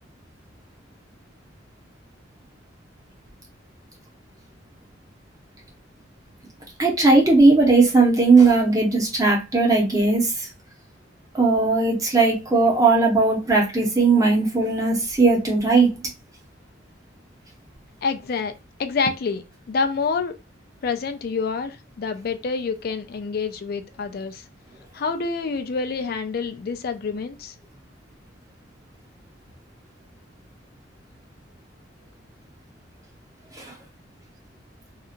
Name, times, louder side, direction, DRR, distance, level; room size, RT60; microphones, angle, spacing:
voice 1, 6.8-10.5 11.3-15.9 33.6-33.7, right 3 dB, 20° right, 0.8 m, -18 dB
voice 2, 18.0-18.5 18.8-20.4 20.8-24.4 24.9-27.5, left 4 dB, 50° left, 0.4 m, -27 dB
2.8 x 2.4 x 2.4 m
head